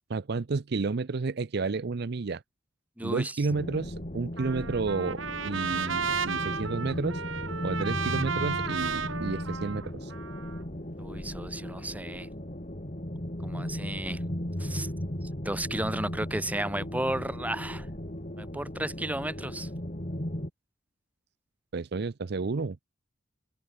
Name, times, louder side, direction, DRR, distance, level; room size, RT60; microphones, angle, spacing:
voice 1, 0.1-2.4 3.0-7.2 7.6-10.1 21.7-22.8, right 4 dB, 50° right, 0.5 m, -31 dB
voice 2, 3.0-3.4 11.0-12.3 13.4-14.2 14.6-14.9 15.4-17.9 18.4-19.7, right 1 dB, 10° right, 2.6 m, -33 dB
sound 1, 3.5-20.5, equal, 35° left, 3.4 m, -36 dB
Trumpet, 4.4-10.6, right 5 dB, 70° right, 2.8 m, -33 dB
head